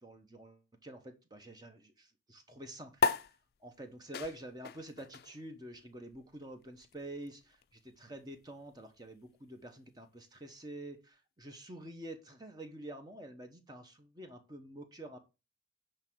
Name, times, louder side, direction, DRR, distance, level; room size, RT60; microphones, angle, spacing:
voice 1, 0.0-3.0 3.6-15.2, right 1 dB, 20° right, 6 dB, 1.1 m, -48 dB
sound 1, 3.0-9.8, left 5 dB, 55° left, 0.4 m, -39 dB
10.0 x 3.4 x 6.2 m, 0.29 s
head